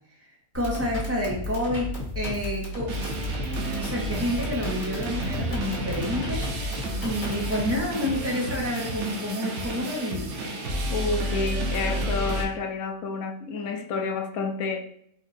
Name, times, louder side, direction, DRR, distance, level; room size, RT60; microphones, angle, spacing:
voice 1, 0.2-3.0 3.6-10.5, left 1 dB, 10° right, 1.0 m, -29 dB
sound 1, 0.5-7.8, left 1 dB, 70° left, 1.8 m, -33 dB
sound 2, 2.9-12.5, right 1 dB, 60° right, 1.0 m, -31 dB
voice 2, 10.9-14.8, left 4 dB, 85° left, 1.1 m, -29 dB
4.6 x 2.6 x 4.0 m
omnidirectional pair, 1.5 m